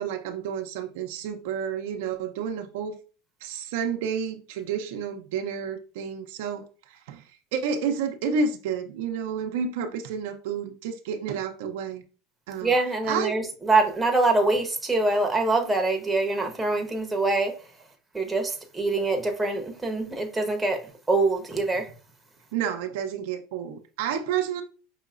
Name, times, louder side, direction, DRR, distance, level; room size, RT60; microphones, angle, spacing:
voice 1, 0.0-3.0 3.4-12.0 12.5-12.8 13.0-13.4 22.5-24.6, right 6 dB, 75° right, 0.6 m, -30 dB
voice 2, 12.6-17.5 18.1-20.8 21.1-21.9, right 2 dB, 10° right, 1.0 m, -24 dB
5.5 x 2.9 x 2.5 m
supercardioid pair, 110°, 0 cm